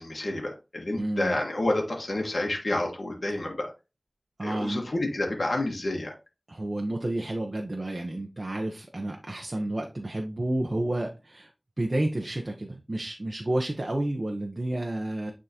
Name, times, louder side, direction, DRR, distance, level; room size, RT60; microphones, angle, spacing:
voice 1, 0.0-3.7 4.4-6.1, left 1 dB, 75° left, 1 dB, 1.4 m, -29 dB
voice 2, 1.0-1.4 4.4-4.8 6.5-11.5 11.8-15.3, right 1 dB, 50° right, 2 dB, 0.8 m, -30 dB
9.1 x 3.7 x 2.9 m, 0.28 s
wide cardioid pair, 40°, 0 cm